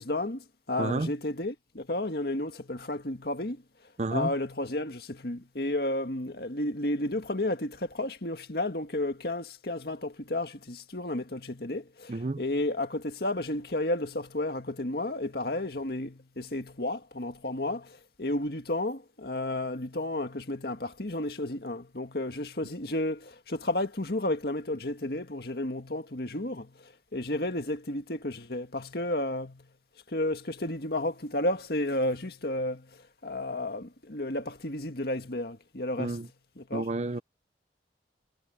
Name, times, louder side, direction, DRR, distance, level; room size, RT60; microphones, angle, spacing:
voice 1, 0.0-3.6 4.1-29.7 30.1-36.3 36.6-36.9, left 1 dB, 60° left, 2.0 m, -32 dB
voice 2, 0.8-1.1 4.0-4.3 12.1-12.4 36.0-36.3 36.7-37.2, right 2 dB, 40° right, 0.6 m, -30 dB
head